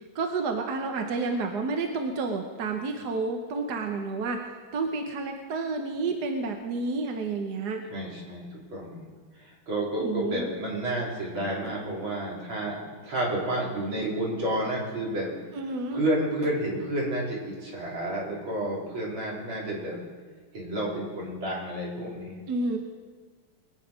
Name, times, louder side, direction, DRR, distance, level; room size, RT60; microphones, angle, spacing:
voice 1, 0.0-4.4 4.7-7.8 10.0-10.5 15.5-16.0 22.5-22.8, right 3 dB, 55° right, 4 dB, 1.5 m, -30 dB
voice 2, 7.9-9.1 9.7-15.3 15.9-20.0 20.5-22.4, right 1 dB, 75° right, -5 dB, 4.5 m, -30 dB
22.0 x 9.0 x 5.1 m, 1.5 s
omnidirectional pair, 2.2 m